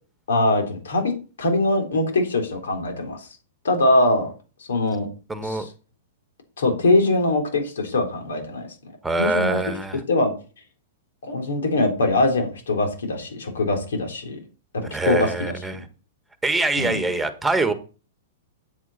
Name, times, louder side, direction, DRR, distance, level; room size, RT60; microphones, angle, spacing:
voice 1, 0.3-1.1 1.4-3.3 3.6-4.3 4.7-5.1 5.4-5.7 6.6-8.7 9.2-9.6 10.1-10.3 11.2-14.4 14.7-15.8 16.8-17.0, left 2 dB, 80° left, 4 dB, 3.7 m, -22 dB
voice 2, 5.3-5.6 9.0-10.0 14.9-15.8 16.4-17.7, right 3 dB, 5° right, 10 dB, 1.6 m, -24 dB
9.0 x 8.1 x 4.3 m, 0.34 s
hypercardioid pair, 120°, 0 cm